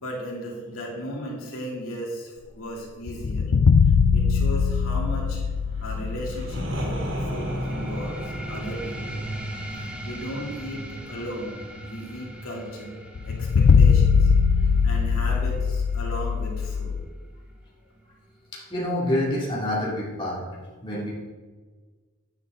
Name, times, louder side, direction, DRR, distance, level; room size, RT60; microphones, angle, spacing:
voice 1, 0.0-3.5 4.1-5.4 5.8-9.2 9.7-14.3 14.8-17.1, equal, 80° left, -3 dB, 2.7 m, -36 dB
sound 1, 3.1-7.8 8.0-8.1 13.2-17.0, left 6 dB, 60° left, 0.4 m, -21 dB
sound 2, 5.7-11.5, equal, 55° right, 1.7 m, -34 dB
sound 3, 7.3-18.3, right 1 dB, 5° right, 0.9 m, -40 dB
voice 2, 18.5-20.4 20.8-21.1, left 1 dB, 20° left, -5 dB, 2.2 m, -27 dB
9.9 x 8.8 x 3.7 m, 1.4 s
head